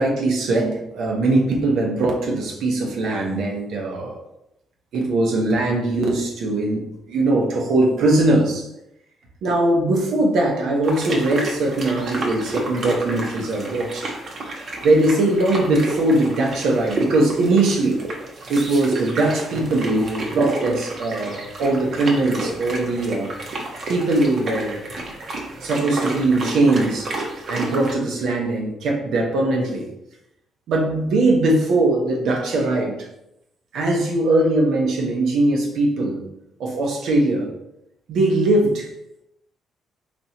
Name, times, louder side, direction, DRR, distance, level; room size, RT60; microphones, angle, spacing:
voice 1, 0.0-4.2 4.9-8.7 9.4-14.1 14.8-18.0 18.5-23.3 23.9-24.8 25.6-27.1 27.5-29.9 30.7-33.0 33.7-36.2 36.6-37.5 38.1-38.9, right 2 dB, 80° right, 0 dB, 0.9 m, -20 dB
sound 1, 10.8-27.9, right 2 dB, 55° right, 0.9 m, -31 dB
4.3 x 3.0 x 2.8 m, 0.84 s
cardioid pair, 90°, 0 cm